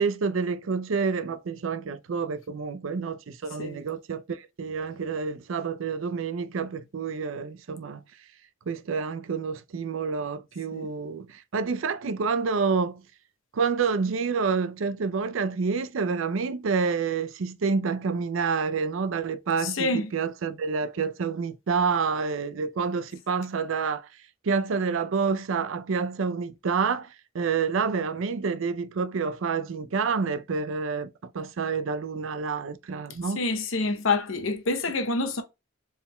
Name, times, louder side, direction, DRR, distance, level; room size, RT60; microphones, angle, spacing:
voice 1, 0.0-8.0 8.7-13.0 13.5-24.1 24.4-33.4, right 5 dB, 90° right, 0.5 m, -28 dB
voice 2, 19.6-20.1 33.4-35.4, left 3 dB, 90° left, 0.8 m, -27 dB
4.5 x 3.6 x 2.2 m
head